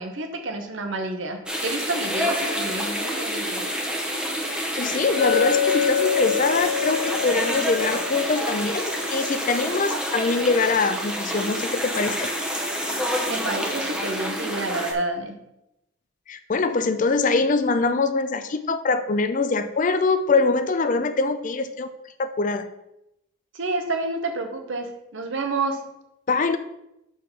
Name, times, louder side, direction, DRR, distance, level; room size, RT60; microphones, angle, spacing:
voice 1, 0.0-3.6 13.3-15.4 23.5-25.8, right 2 dB, 60° right, 5 dB, 0.9 m, -29 dB
sound 1, 1.5-14.9, equal, 5° right, 0.7 m, -28 dB
voice 2, 4.5-12.3 16.3-21.9 22.2-22.7 26.3-26.6, left 3 dB, 35° left, 10 dB, 0.4 m, -23 dB
Chink clink, 5.2-9.4, left 8 dB, 90° left, 0.6 m, -26 dB
6.1 x 4.7 x 5.5 m, 0.85 s
head